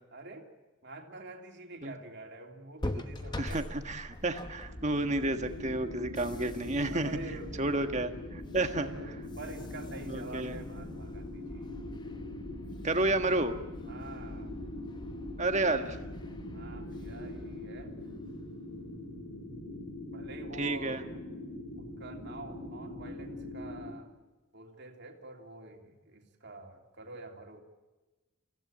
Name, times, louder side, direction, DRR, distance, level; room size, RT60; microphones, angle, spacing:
voice 1, 0.1-0.5 0.8-3.7 6.9-7.9 8.6-11.7 13.9-14.5 16.5-17.9 20.1-21.1 21.8-24.1 24.5-27.6, right 2 dB, 50° right, 3 dB, 3.2 m, -47 dB
sound 1, 2.8-18.5, left 1 dB, 20° left, 1.0 m, -44 dB
voice 2, 3.4-7.1 7.6-9.1 10.1-10.5 12.8-13.5 15.4-16.0 20.6-21.0, right 2 dB, 30° right, 7 dB, 1.5 m, -31 dB
sound 2, 4.6-23.9, left 1 dB, 65° left, 3.7 m, -43 dB
27.5 x 16.5 x 8.9 m, 1.2 s
head